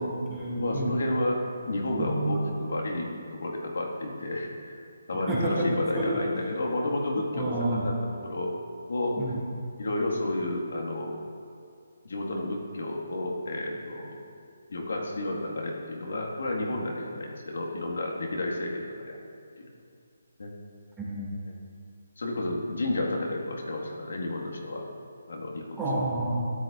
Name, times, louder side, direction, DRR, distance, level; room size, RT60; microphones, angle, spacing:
voice 1, 0.0-1.0 2.0-2.4 5.3-5.7 5.9-6.1 7.1-7.8 9.2-9.4 21.0-21.3 25.8-26.5, right 2 dB, 10° right, -8 dB, 2.1 m, -30 dB
voice 2, 0.6-4.8 5.1-8.5 8.9-9.2 9.8-11.1 12.0-14.2 14.7-19.2 19.6-19.7 20.4-20.5 22.2-24.8 25.3-25.8, left 1 dB, 75° left, -1 dB, 1.6 m, -31 dB
13.5 x 9.8 x 2.4 m, 2.4 s
hypercardioid pair, 165°, 0 cm